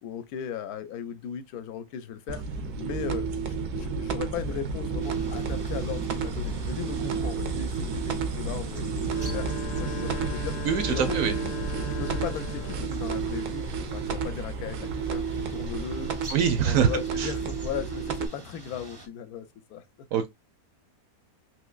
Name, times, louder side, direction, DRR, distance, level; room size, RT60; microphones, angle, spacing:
voice 1, 0.0-2.4 2.8-9.5 9.8-10.5 10.9-11.2 11.9-19.8, left 8 dB, 80° left, 1.1 m, -37 dB
sound 1, 2.3-18.3, right 5 dB, 85° right, 1.2 m, -31 dB
sound 2, 5.0-19.1, right 2 dB, 30° right, 0.4 m, -45 dB
sound 3, 9.0-13.0, left 2 dB, 50° left, 0.5 m, -39 dB
voice 2, 10.6-11.3 16.3-16.9 17.2-17.3 20.1-20.3, right 8 dB, 70° right, 0.9 m, -24 dB
3.5 x 3.0 x 2.3 m
omnidirectional pair, 1.6 m